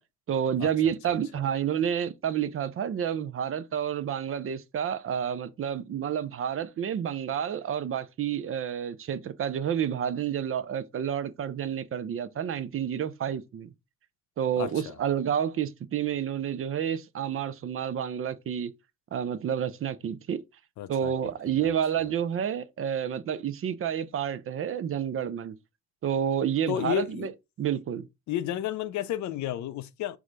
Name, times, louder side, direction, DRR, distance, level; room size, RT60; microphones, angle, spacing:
voice 1, 0.3-13.7 14.4-18.7 19.1-20.4 20.9-25.5 26.0-27.3 27.6-28.1, right 9 dB, 45° right, 0.5 m, -29 dB
voice 2, 1.1-1.4 14.6-15.0 20.8-21.8 26.7-27.3 28.3-30.2, left 11 dB, 70° left, 0.5 m, -32 dB
4.8 x 2.2 x 3.8 m
cardioid pair, 90°, 30 cm